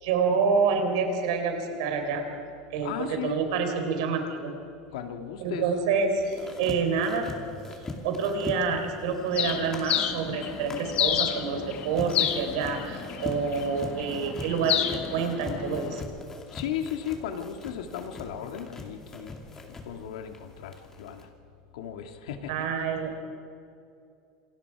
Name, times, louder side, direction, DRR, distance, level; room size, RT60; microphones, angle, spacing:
voice 1, 0.0-2.3 2.7-4.5 5.4-7.3 8.0-14.9 15.1-16.0 22.5-23.1, right 5 dB, 75° right, 5 dB, 4.1 m, -27 dB
voice 2, 2.8-3.4 4.9-5.6 16.5-19.3 19.8-21.3 21.7-22.7, left 9 dB, 90° left, 5 dB, 2.2 m, -35 dB
sound 1, 6.2-21.3, left 2 dB, 15° left, 2.5 m, -42 dB
Bird, 9.3-16.0, left 10 dB, 40° left, 1.6 m, -31 dB
27.5 x 25.5 x 4.9 m, 2.5 s
supercardioid pair, 155°, 3 cm